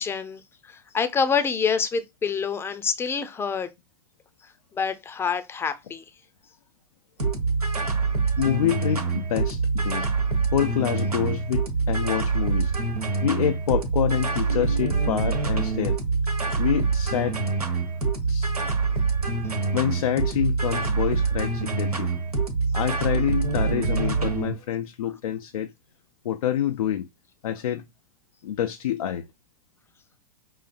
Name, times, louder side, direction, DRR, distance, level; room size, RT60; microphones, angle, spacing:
voice 1, 0.0-3.7 4.7-6.0, left 6 dB, 15° left, 0.6 m, -27 dB
sound 1, 7.2-24.5, right 4 dB, 90° right, 1.2 m, -25 dB
voice 2, 8.4-10.1 10.5-12.7 13.2-16.0 16.6-17.4 18.3-18.5 19.7-22.1 22.7-25.7 26.2-27.1 27.4-27.8 28.4-29.2, left 10 dB, 75° left, 0.5 m, -27 dB
5.6 x 2.7 x 2.5 m
figure-of-eight pair, 100°, 19 cm